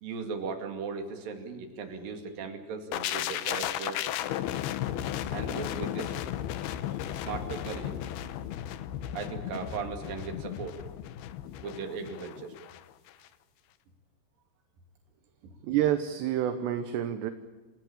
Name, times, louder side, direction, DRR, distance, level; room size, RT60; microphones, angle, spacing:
voice 1, 0.0-4.0 5.3-6.3 7.1-8.0 9.1-10.8 11.6-12.5, right 5 dB, 55° right, 5 dB, 3.8 m, -37 dB
sound 1, 2.9-12.8 13.1-13.3, left 11 dB, 75° left, 2.4 m, -35 dB
voice 2, 15.6-17.3, right 11 dB, 70° right, 9 dB, 3.0 m, -28 dB
29.0 x 16.5 x 8.7 m, 1.3 s
omnidirectional pair, 5.5 m